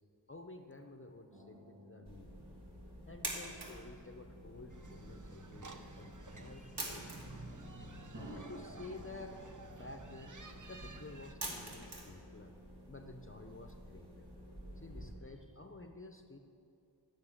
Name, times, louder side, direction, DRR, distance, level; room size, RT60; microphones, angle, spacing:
voice 1, 0.3-2.3 3.1-7.1 8.2-9.4 9.7-10.4 10.7-12.5 12.9-14.3 14.8-16.4, left 2 dB, 30° left, 0.8 m, -51 dB
sound 1, 1.3-5.2 6.1-6.2 8.1-11.5 11.7-11.8, equal, 75° right, 2.9 m, -57 dB
sound 2, 2.0-15.1, right 1 dB, 60° right, 2.4 m, -48 dB
sound 3, 4.7-11.3, right 3 dB, 40° right, 0.9 m, -54 dB
voice 2, 6.3-8.3, right 1 dB, 15° right, 1.1 m, -53 dB
10.0 x 8.6 x 7.5 m
wide cardioid pair, 45°, 45 cm